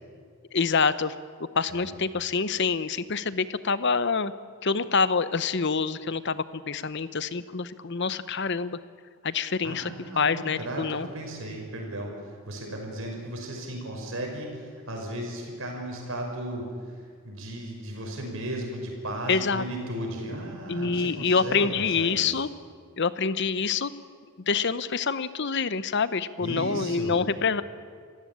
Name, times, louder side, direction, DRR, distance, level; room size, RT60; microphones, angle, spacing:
voice 1, 0.5-1.1 1.5-4.3 4.6-8.8 9.2-9.9 10.2-11.1 19.3-19.6 20.7-22.5 23.0-23.9 24.5-27.6, left 5 dB, 50° left, 15 dB, 0.8 m, -26 dB
voice 2, 9.6-22.4 26.4-27.2, right 1 dB, 60° right, 1 dB, 5.7 m, -35 dB
27.0 x 16.0 x 8.8 m, 2.1 s
head